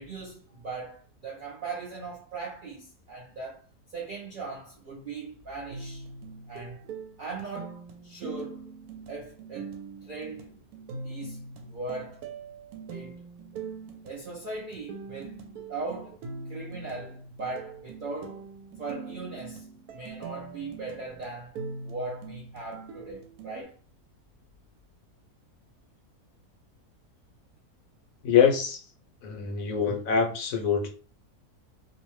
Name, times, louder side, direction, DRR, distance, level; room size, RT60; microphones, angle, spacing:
voice 1, 0.0-3.6 3.9-6.1 6.5-6.8 7.2-8.7 9.1-9.7 10.0-10.5 11.0-12.2 12.9-13.2 14.0-15.4 15.7-16.2 16.5-18.4 18.8-21.6 21.8-23.7, right 3 dB, 60° right, 0.5 m, -39 dB
sound 1, 5.7-23.6, right 4 dB, 75° right, 1.0 m, -42 dB
voice 2, 28.2-28.8 29.2-30.9, left 7 dB, 70° left, 1.0 m, -24 dB
2.6 x 2.1 x 3.0 m
omnidirectional pair, 1.6 m